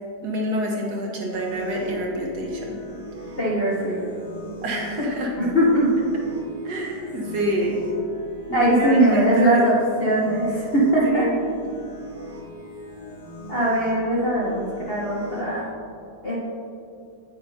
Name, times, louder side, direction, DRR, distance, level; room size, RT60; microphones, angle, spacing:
voice 1, 0.2-2.8 4.6-5.3 6.6-7.8 8.5-9.6 11.0-11.4, right 1 dB, 60° right, -1 dB, 1.6 m, -27 dB
sound 1, 1.3-15.6, left 1 dB, 80° left, 2.8 m, -39 dB
voice 2, 3.4-4.0 5.4-6.1 8.5-11.2 13.5-15.6 16.2-16.4, right 1 dB, 40° left, -7 dB, 1.1 m, -20 dB
8.7 x 8.6 x 2.7 m, 2.5 s
omnidirectional pair, 2.0 m